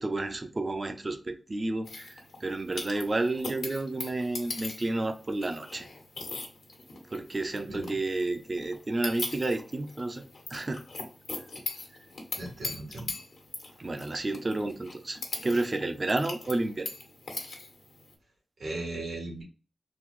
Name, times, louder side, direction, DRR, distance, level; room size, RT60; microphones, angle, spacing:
voice 1, 0.0-2.1 2.4-5.9 7.1-10.2 10.5-10.8 13.8-16.9, right 2 dB, 35° right, 8 dB, 0.5 m, -31 dB
sound 1, 1.8-18.1, left 3 dB, 80° left, 1.2 m, -41 dB
voice 2, 12.4-13.1 18.6-19.4, right 2 dB, 85° right, -2 dB, 1.6 m, -37 dB
3.8 x 2.8 x 3.0 m, 0.37 s
wide cardioid pair, 80°, 0 cm